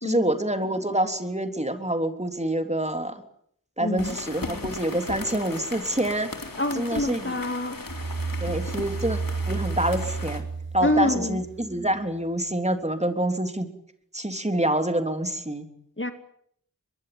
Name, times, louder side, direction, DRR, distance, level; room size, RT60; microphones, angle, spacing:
voice 1, 0.0-3.2 3.8-6.3 6.7-7.4 8.4-9.2 9.5-10.4 10.7-13.7 14.1-15.7, right 1 dB, 20° right, 7 dB, 3.5 m, -26 dB
voice 2, 3.8-4.1 6.6-7.8 10.8-11.4 16.0-16.1, left 1 dB, 35° left, 8 dB, 2.5 m, -26 dB
sound 1, 4.0-10.4, left 3 dB, 90° left, 3.8 m, -37 dB
sound 2, 7.9-12.0, right 4 dB, 35° right, 5.4 m, -32 dB
23.0 x 23.0 x 9.7 m, 0.68 s
wide cardioid pair, 45°, 33 cm